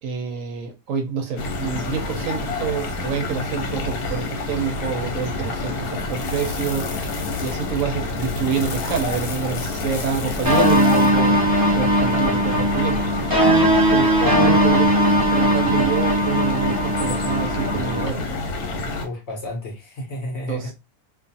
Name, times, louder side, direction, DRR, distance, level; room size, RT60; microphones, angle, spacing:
voice 1, 0.0-6.9 7.4-11.4 11.8-13.1 13.9-18.3 20.5-20.7, right 7 dB, 70° right, 0.9 m, -27 dB
sound 1, 1.4-19.0, left 3 dB, 80° left, 1.2 m, -28 dB
sound 2, 10.5-18.1, equal, 30° right, 0.3 m, -19 dB
voice 2, 14.2-14.8 19.0-20.7, left 1 dB, 55° left, 0.9 m, -31 dB
2.5 x 2.3 x 2.6 m
omnidirectional pair, 1.6 m